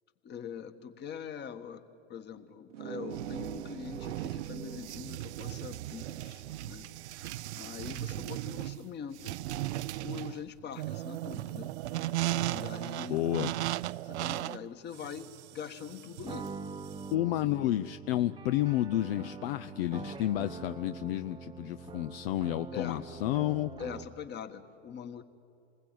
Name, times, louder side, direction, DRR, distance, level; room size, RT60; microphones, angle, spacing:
voice 1, 0.2-1.8 2.1-6.9 7.6-9.4 10.0-11.7 12.5-13.3 14.0-16.6 22.7-23.1 23.8-25.2, left 7 dB, 30° left, 10 dB, 1.5 m, -43 dB
sound 1, 2.7-8.0, right 10 dB, 85° right, 1.3 m, -45 dB
sound 2, 3.1-17.1, right 15 dB, 70° right, 0.6 m, -37 dB
voice 2, 13.1-13.5 17.1-23.7, left 15 dB, 55° left, 11 dB, 0.6 m, -31 dB
sound 3, 16.2-24.3, right 5 dB, 15° right, 0.9 m, -44 dB
27.5 x 20.5 x 9.2 m, 2.7 s
hypercardioid pair, 110°, 35 cm